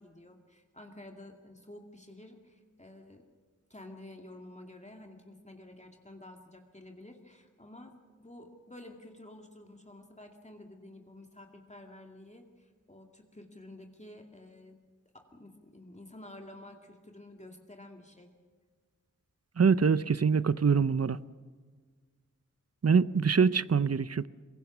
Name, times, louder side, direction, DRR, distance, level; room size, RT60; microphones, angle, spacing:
voice 1, 0.0-3.2 3.7-14.8 15.1-18.3, left 1 dB, 20° left, 3 dB, 2.3 m, -51 dB
voice 2, 19.6-21.2 22.8-24.3, right 5 dB, 55° right, 16 dB, 0.7 m, -24 dB
23.0 x 22.0 x 7.2 m, 1.5 s
wide cardioid pair, 50°, 31 cm